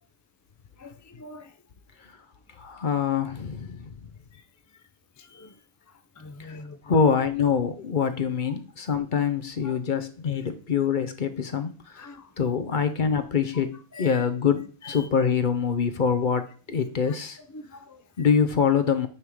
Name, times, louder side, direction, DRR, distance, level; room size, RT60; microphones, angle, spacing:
voice 1, 0.8-1.5 4.3-4.4 5.2-5.5 6.2-6.8 9.6-9.8 11.9-12.3 13.9-14.2 14.5-15.1 16.7-16.8 17.1-17.2 17.5-18.3, left 2 dB, 25° left, 8 dB, 0.4 m, -44 dB
voice 2, 2.6-3.9 6.4-6.6 6.8-17.4 18.2-19.1, left 6 dB, 45° left, 9 dB, 0.8 m, -25 dB
9.8 x 3.7 x 4.7 m, 0.39 s
omnidirectional pair, 1.3 m